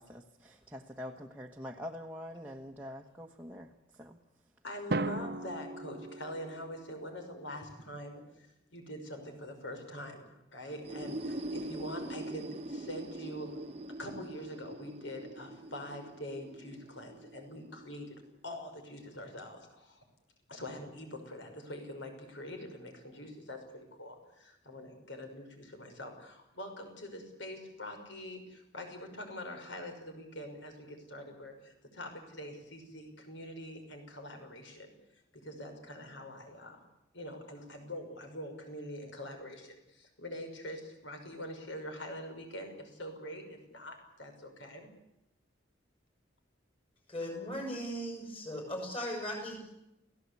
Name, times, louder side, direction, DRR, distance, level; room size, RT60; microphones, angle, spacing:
voice 1, 0.0-4.2, equal, 10° right, 0 dB, 1.2 m, -45 dB
voice 2, 4.6-13.5 14.0-20.0 20.5-36.8 37.1-44.9, left 1 dB, 70° left, 5 dB, 5.8 m, -44 dB
Drum, 4.9-6.9, right 2 dB, 50° right, 0.9 m, -36 dB
sound 1, 10.7-18.4, right 1 dB, 30° right, 1.2 m, -43 dB
voice 3, 47.1-49.8, equal, 30° left, 2 dB, 7.1 m, -38 dB
29.5 x 17.0 x 8.4 m, 0.86 s
head